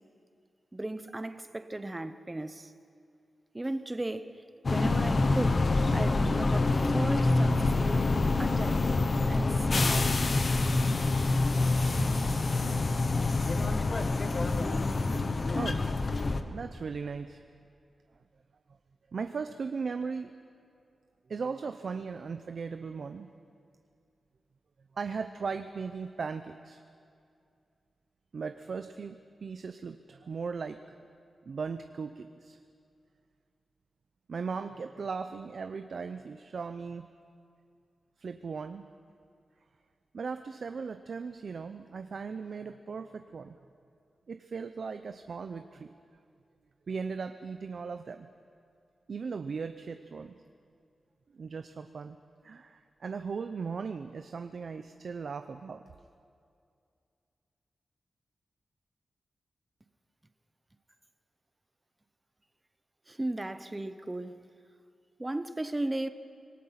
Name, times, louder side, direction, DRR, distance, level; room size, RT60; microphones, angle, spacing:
voice 1, 0.7-2.7 3.5-8.1 8.4-10.1 63.1-64.4 65.2-66.1, right 1 dB, 15° right, 0.8 m, -36 dB
sound 1, 4.6-16.4, left 3 dB, 40° left, 1.0 m, -26 dB
voice 2, 15.5-15.8 16.4-17.4 19.1-20.3 21.3-23.3 24.9-26.8 28.3-30.9 31.5-32.6 34.3-37.1 38.2-38.9 40.1-43.6 44.3-45.9 46.9-48.3 49.1-50.3 51.3-52.2 52.4-55.8, right 5 dB, 55° right, 0.6 m, -38 dB
26.0 x 19.0 x 5.8 m
wide cardioid pair, 150°, 0 cm